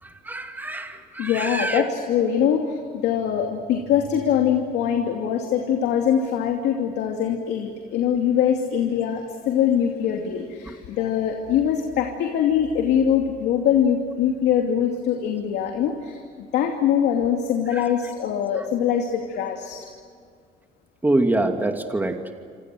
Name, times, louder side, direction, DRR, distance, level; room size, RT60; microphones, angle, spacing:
voice 1, 0.0-1.8 10.7-10.8 11.0-11.1 17.7-17.9 18.6-18.7 21.0-22.3, right 2 dB, 10° right, 4 dB, 2.7 m, -25 dB
voice 2, 1.2-16.2 16.5-19.9, left 8 dB, 85° left, 2 dB, 2.7 m, -23 dB
28.0 x 26.0 x 7.8 m, 2.1 s
cardioid pair, 110°, 17 cm